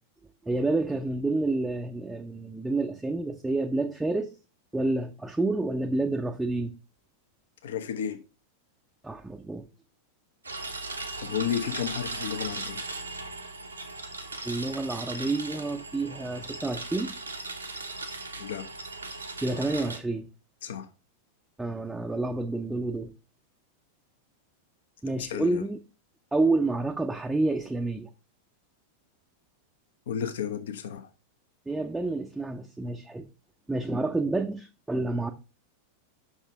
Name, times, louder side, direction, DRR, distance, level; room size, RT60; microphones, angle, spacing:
voice 1, 0.4-4.3 4.7-6.7 9.0-9.7 14.4-17.1 19.4-20.3 21.6-23.1 25.0-25.8 26.3-28.1 31.7-33.3 33.7-35.3, right 2 dB, 5° right, 0.6 m, -29 dB
voice 2, 7.6-8.2 11.2-12.8 18.4-18.6 20.6-20.9 25.1-25.7 30.1-31.1, left 8 dB, 60° left, 0.9 m, -32 dB
sound 1, 10.4-20.0, right 3 dB, 80° right, 1.0 m, -38 dB
6.2 x 4.0 x 5.2 m
figure-of-eight pair, 90°, 0 cm